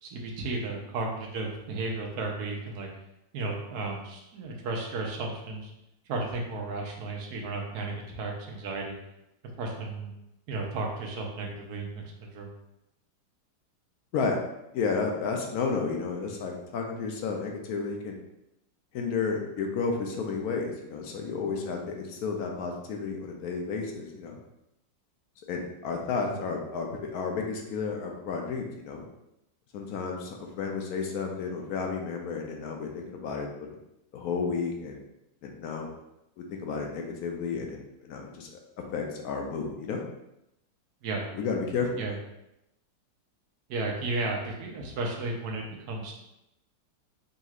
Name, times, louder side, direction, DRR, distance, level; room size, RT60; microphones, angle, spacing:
voice 1, 0.0-2.9 3.3-5.7 6.1-9.0 9.6-10.1 10.5-12.5 26.2-26.4 41.0-41.3 42.0-42.1 43.7-46.1, right 3 dB, 65° right, 0 dB, 1.2 m, -34 dB
voice 2, 14.7-18.2 18.9-24.4 25.5-29.0 29.7-33.7 34.1-35.0 35.4-35.9 36.4-38.5 38.9-40.0 41.3-42.0, left 5 dB, 70° left, 1 dB, 1.0 m, -32 dB
5.3 x 3.1 x 2.4 m, 0.87 s
omnidirectional pair, 1.9 m